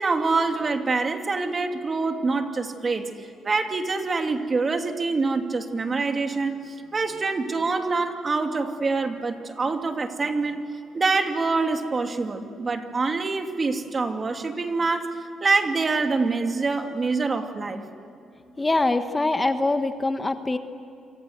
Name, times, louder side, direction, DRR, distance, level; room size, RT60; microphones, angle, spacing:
voice 1, 0.0-3.1 3.4-6.5 6.9-10.6 10.9-17.8, right 3 dB, 35° right, 5 dB, 2.8 m, -25 dB
voice 2, 18.6-20.6, left 2 dB, 20° left, 8 dB, 1.3 m, -23 dB
28.0 x 25.5 x 8.1 m, 2.6 s
cardioid pair, 90°, 0 cm